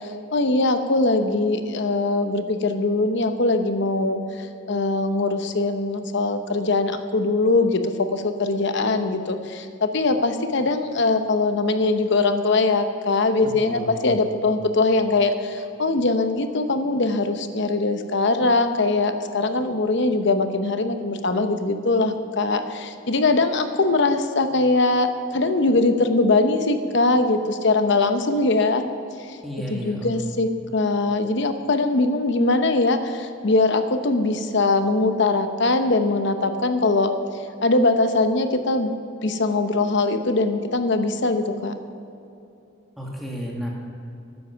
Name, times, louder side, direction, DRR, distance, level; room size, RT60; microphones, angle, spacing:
voice 1, 0.3-28.8 29.3-29.4 29.7-37.1 37.6-38.9 39.2-41.7, left 3 dB, 60° left, 8 dB, 0.8 m, -21 dB
voice 2, 13.4-14.1 14.4-14.5 29.4-30.1 43.0-43.7, equal, ahead, -3 dB, 2.0 m, -33 dB
12.5 x 9.6 x 5.8 m, 2.8 s
head